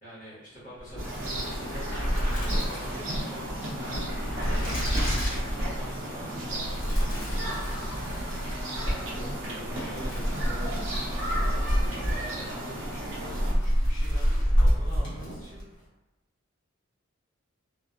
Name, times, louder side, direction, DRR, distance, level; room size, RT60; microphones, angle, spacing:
voice 1, 0.0-3.5 5.6-7.7 8.9-10.1 11.5-15.6, equal, 40° left, -10 dB, 1.1 m, -46 dB
sound 1, 0.8-15.7, equal, 65° left, 1.1 m, -28 dB
sound 2, 1.0-13.5, right 1 dB, 65° right, 0.7 m, -35 dB
sound 3, 7.7-10.1, equal, 15° left, 0.8 m, -50 dB
voice 2, 9.0-10.9, equal, 35° right, -1 dB, 0.3 m, -42 dB
2.4 x 2.2 x 2.4 m, 1.0 s
head